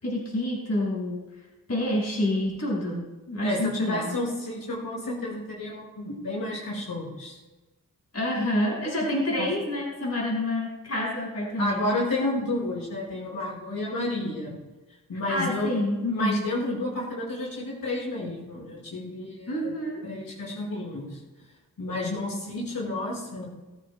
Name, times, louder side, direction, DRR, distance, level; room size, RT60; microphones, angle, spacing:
voice 1, 0.0-1.2 1.7-4.1 8.1-11.9 15.3-16.4 19.5-20.0, left 1 dB, 50° left, -3 dB, 5.7 m, -28 dB
voice 2, 3.4-7.4 9.4-9.5 11.6-14.6 15.1-15.7 16.1-19.7 20.0-21.2 21.8-23.5, left 2 dB, 75° left, -4 dB, 5.4 m, -31 dB
22.0 x 14.5 x 2.3 m, 1.1 s
wide cardioid pair, 130°, 34 cm